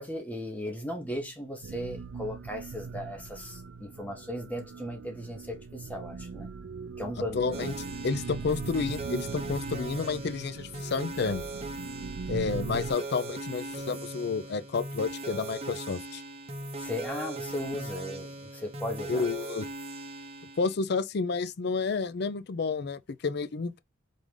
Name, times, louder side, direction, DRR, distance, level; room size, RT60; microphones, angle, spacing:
voice 1, 0.0-6.5 7.0-7.7 16.8-19.3, left 1 dB, 10° left, 1.1 m, -37 dB
sound 1, 1.6-12.9, right 5 dB, 80° right, 0.4 m, -40 dB
voice 2, 7.3-7.7 8.0-11.4 12.3-16.2 19.1-19.7 20.6-23.8, left 4 dB, 55° left, 0.4 m, -30 dB
sound 2, 7.5-20.8, right 2 dB, 30° right, 0.8 m, -39 dB
3.8 x 3.6 x 3.2 m
head